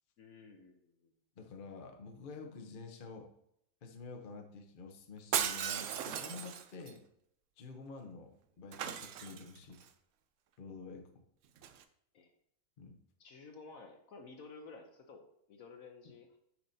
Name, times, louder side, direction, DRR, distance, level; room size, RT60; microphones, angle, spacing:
voice 1, 0.2-1.1 12.1-12.3 13.2-16.4, left 4 dB, 60° left, 4 dB, 1.0 m, -53 dB
voice 2, 1.4-3.3 3.8-7.0 7.6-9.9 10.6-11.2 12.8-13.0, left 4 dB, 45° left, 4 dB, 0.7 m, -49 dB
Shatter, 5.3-6.9 8.7-9.8 11.6-11.8, right 9 dB, 90° right, 0.6 m, -36 dB
7.1 x 6.0 x 2.7 m, 0.74 s
omnidirectional pair, 1.9 m